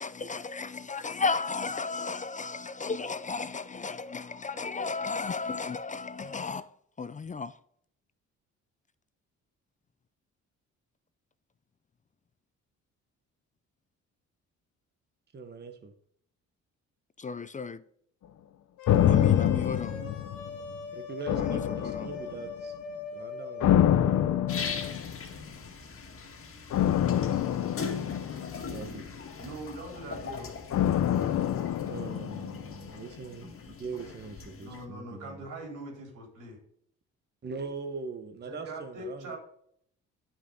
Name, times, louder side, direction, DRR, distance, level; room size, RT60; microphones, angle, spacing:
voice 1, 0.0-6.6 7.0-7.5 17.2-17.8 19.0-19.9 21.3-22.1, left 4 dB, 25° left, 0.5 m, -34 dB
voice 2, 15.3-15.9 20.9-22.8 23.1-24.3 28.7-29.1 31.8-35.4 37.4-39.4, right 4 dB, 35° right, 1.1 m, -41 dB
sound 1, 18.8-24.9, left 6 dB, 90° left, 2.3 m, -40 dB
sound 2, 18.9-20.8 21.3-22.5 23.6-25.3 26.7-29.1 30.7-32.9 33.2-33.3, left 10 dB, 65° left, 0.8 m, -26 dB
sound 3, 24.5-34.9, left 5 dB, 45° left, 1.9 m, -41 dB
voice 3, 29.4-30.6 34.6-36.6 38.4-39.4, right 1 dB, 85° right, 4.1 m, -42 dB
10.0 x 5.9 x 4.1 m
cardioid pair, 90°, 30 cm